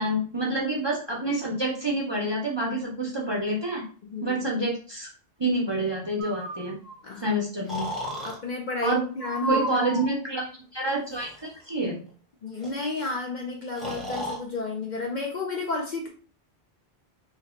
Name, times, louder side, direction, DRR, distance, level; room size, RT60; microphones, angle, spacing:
voice 1, 0.0-3.8 4.2-5.1 5.4-6.8 7.2-7.9 8.8-9.0 9.5-10.4 10.7-12.0, right 1 dB, 30° right, -2 dB, 0.6 m, -27 dB
voice 2, 4.0-4.4 7.0-7.4 8.2-9.9 12.4-16.1, left 3 dB, 50° left, 0 dB, 0.6 m, -32 dB
Breathing, 6.2-7.0 7.7-8.4 9.2-10.1 11.0-11.4 12.6-12.7 13.0-13.1 13.8-14.4, equal, ahead, 0.8 m, -32 dB
3.2 x 2.1 x 3.7 m, 0.39 s
omnidirectional pair, 1.1 m